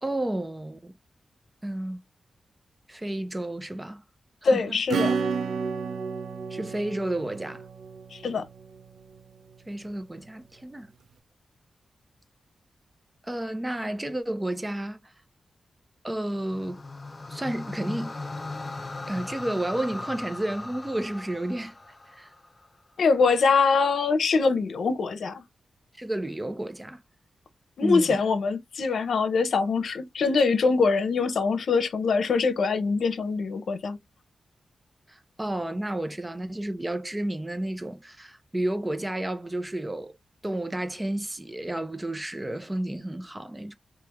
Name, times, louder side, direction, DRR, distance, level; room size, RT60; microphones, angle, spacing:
voice 1, 0.0-0.9 1.6-2.0 2.9-4.0 4.4-4.8 6.5-7.6 9.7-10.9 13.2-15.1 16.0-16.8 17.3-18.1 19.1-21.8 22.1-22.3 25.9-27.0 27.8-28.2 35.1-40.1 40.4-43.7, right 1 dB, 15° right, 0.6 m, -31 dB
voice 2, 4.4-5.2 8.1-8.4 23.0-25.4 27.8-34.0, left 4 dB, 70° left, 0.8 m, -23 dB
Acoustic guitar / Strum, 4.9-9.2, right 5 dB, 85° right, 0.7 m, -31 dB
sound 1, 16.4-22.7, left 2 dB, 25° left, 0.6 m, -38 dB
3.3 x 2.9 x 3.5 m
wide cardioid pair, 125°, 0 cm